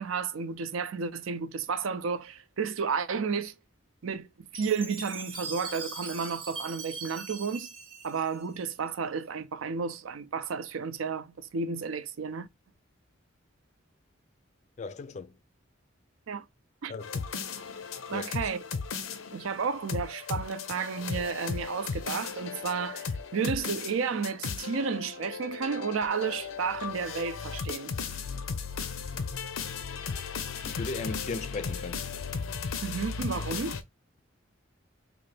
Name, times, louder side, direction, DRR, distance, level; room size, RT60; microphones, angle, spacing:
voice 1, 0.0-3.5 4.0-4.3 4.5-7.7 8.0-12.5 16.3-16.4 16.8-16.9 18.1-18.6 19.3-27.9 32.8-33.8, right 5 dB, 90° right, 0.5 m, -32 dB
Chime, 4.5-8.9, right 4 dB, 25° right, 0.9 m, -41 dB
voice 2, 14.8-15.3 16.9-17.2 18.1-18.3 30.6-32.0, left 3 dB, 35° left, 0.3 m, -37 dB
sound 1, 17.0-33.8, left 5 dB, 85° left, 0.5 m, -36 dB
3.8 x 2.5 x 3.2 m
head